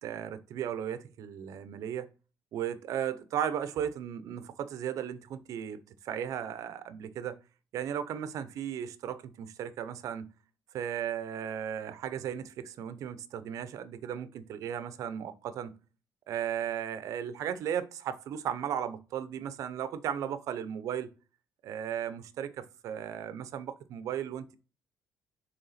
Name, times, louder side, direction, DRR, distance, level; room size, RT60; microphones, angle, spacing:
voice 1, 0.0-2.1 2.5-7.4 7.7-10.3 10.7-15.7 16.3-21.1 21.6-24.6, right 9 dB, 65° right, 0.6 m, -36 dB
6.8 x 3.5 x 4.1 m
cardioid pair, 120°, 6 cm